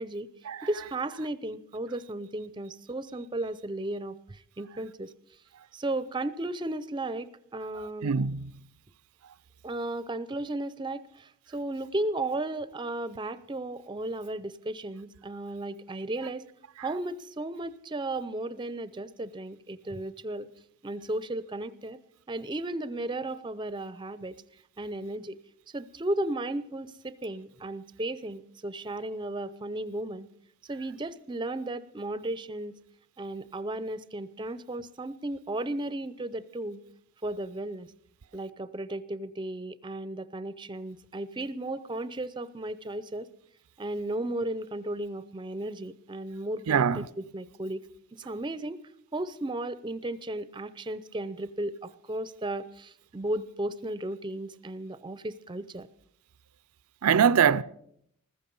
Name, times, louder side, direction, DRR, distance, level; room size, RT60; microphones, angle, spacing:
voice 1, 0.6-5.1 5.7-8.2 9.6-16.5 16.8-20.5 20.8-22.0 22.3-24.4 24.8-25.4 25.7-30.3 30.7-32.8 33.2-36.8 37.2-37.9 38.3-43.3 43.8-47.9 48.2-48.8 49.1-55.9, right 1 dB, 20° right, 0.5 m, -35 dB
voice 2, 8.0-8.5 46.7-47.1 57.0-57.6, right 7 dB, 90° right, 0.5 m, -23 dB
15.0 x 14.0 x 5.4 m
head